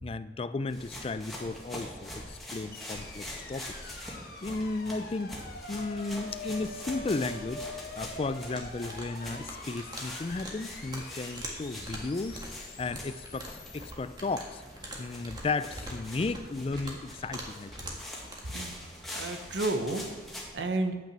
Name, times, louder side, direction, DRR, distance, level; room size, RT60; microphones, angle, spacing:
voice 1, 0.0-4.0 4.4-5.4 5.7-7.7 8.0-14.6 15.0-17.7, left 3 dB, 30° left, 13 dB, 0.3 m, -34 dB
sound 1, 0.7-20.5, left 1 dB, ahead, 1.8 m, -44 dB
sound 2, 2.7-15.0, left 2 dB, 55° left, 1.2 m, -46 dB
sound 3, 8.5-18.4, right 1 dB, 20° right, 1.6 m, -44 dB
voice 2, 18.5-20.0 20.5-21.0, right 2 dB, 70° right, 5 dB, 1.0 m, -32 dB
9.1 x 5.9 x 7.3 m, 1.3 s
head